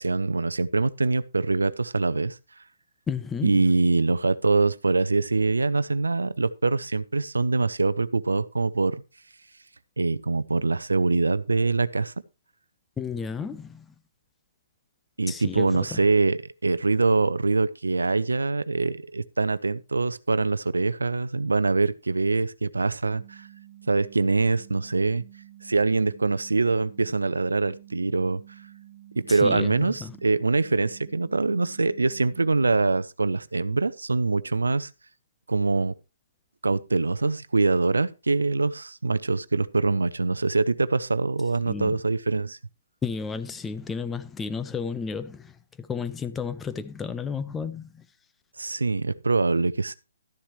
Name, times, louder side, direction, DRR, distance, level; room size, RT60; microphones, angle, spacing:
voice 1, 0.0-2.4 3.4-9.0 10.0-12.1 15.2-23.5 23.9-25.2 25.6-28.4 29.2-34.9 35.5-35.9 36.6-42.6 48.6-49.9, right 3 dB, 80° right, 0.6 m, -24 dB
voice 2, 3.1-3.7 13.0-13.9 15.3-16.0 29.3-30.2 41.7-42.0 43.0-45.5 45.8-48.0, left 5 dB, 10° left, 0.6 m, -32 dB
sound 1, 23.0-33.0, right 14 dB, 45° right, 2.0 m, -50 dB
13.0 x 10.0 x 3.1 m
figure-of-eight pair, 135°, 0 cm